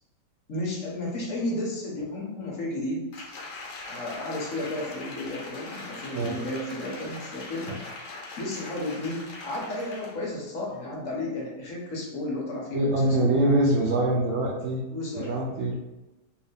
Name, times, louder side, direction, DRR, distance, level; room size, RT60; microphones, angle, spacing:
voice 1, 0.5-3.2 3.8-7.7 8.4-13.3 14.9-15.8, left 1 dB, 55° left, -3 dB, 1.3 m, -33 dB
Applause, 3.1-10.3 10.7-10.8, left 2 dB, 80° left, 1.4 m, -41 dB
voice 2, 12.7-14.8 15.1-15.7, right 1 dB, 85° right, -3 dB, 0.5 m, -24 dB
3.5 x 2.7 x 3.4 m, 1.0 s
omnidirectional pair, 1.9 m